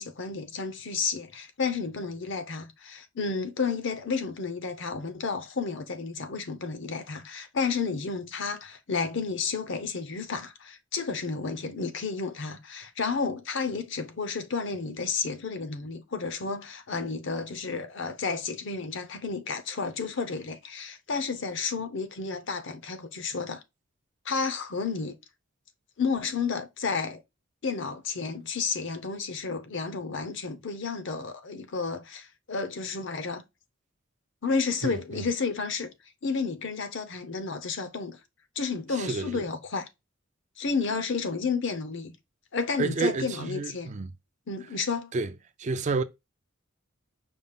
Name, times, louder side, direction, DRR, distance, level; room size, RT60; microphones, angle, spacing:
voice 1, 0.0-23.6 24.2-25.2 26.0-27.2 27.6-33.4 34.4-35.9 36.2-38.2 38.6-39.9 40.6-42.2 42.5-43.9 44.5-45.1, left 5 dB, 65° left, 0.7 m, -31 dB
voice 2, 34.8-35.2 39.0-39.4 42.8-44.1 45.1-45.3 45.6-46.0, right 3 dB, 35° right, 0.4 m, -30 dB
5.2 x 2.4 x 3.6 m
head